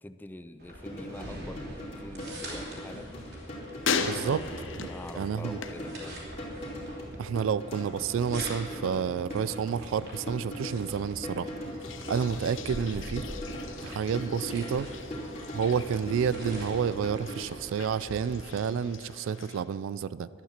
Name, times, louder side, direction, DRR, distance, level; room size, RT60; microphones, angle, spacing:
voice 1, 0.0-3.2 4.2-6.2, left 1 dB, 10° left, 10 dB, 0.4 m, -45 dB
sound 1, 0.6-18.4, right 1 dB, 50° right, 2.8 m, -45 dB
sound 2, 0.7-17.4, equal, 30° left, 2.8 m, -40 dB
sound 3, 2.3-6.8 7.0-7.6 11.7-19.6, left 5 dB, 70° left, 0.8 m, -39 dB
voice 2, 4.0-4.4 4.8-4.9 5.2-5.6 7.2-11.5 12.1-13.2 13.8-14.9 15.5-20.3, right 7 dB, 75° right, 18 dB, 0.3 m, -30 dB
12.0 x 9.6 x 7.3 m, 2.8 s
head